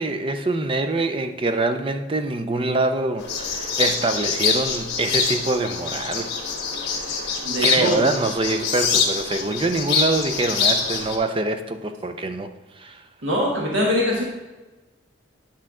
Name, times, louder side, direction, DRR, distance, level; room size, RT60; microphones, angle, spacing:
voice 1, 0.0-6.3 6.8-12.5 12.7-13.0, right 2 dB, 25° right, 8 dB, 0.5 m, -25 dB
sound 1, 3.2-11.2, left 5 dB, 55° left, 1.4 m, -25 dB
voice 2, 7.4-8.0 13.2-14.2, equal, 70° right, -3 dB, 1.4 m, -22 dB
9.9 x 5.7 x 3.7 m, 1.1 s
head